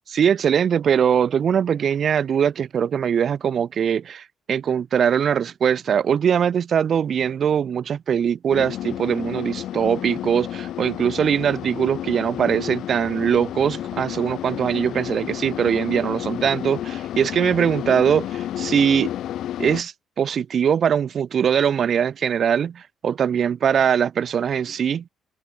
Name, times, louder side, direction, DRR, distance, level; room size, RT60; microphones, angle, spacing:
voice 1, 0.1-19.1 19.6-25.0, right 8 dB, 55° right, 1.0 m, -21 dB
sound 1, 8.5-19.8, left 12 dB, 75° left, 2.6 m, -31 dB
cardioid pair, 90°, 0 cm